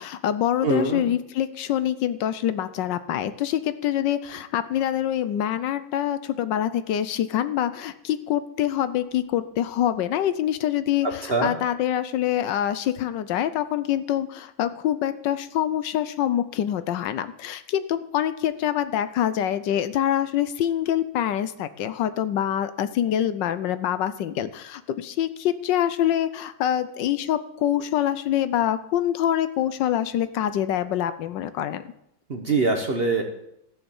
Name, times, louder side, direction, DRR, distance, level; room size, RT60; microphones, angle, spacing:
voice 1, 0.0-31.9, left 11 dB, 75° left, 13 dB, 1.3 m, -25 dB
voice 2, 0.6-1.0 11.3-11.5 32.3-33.2, right 3 dB, 40° right, 4 dB, 1.0 m, -23 dB
14.0 x 7.1 x 7.1 m, 0.79 s
omnidirectional pair, 2.1 m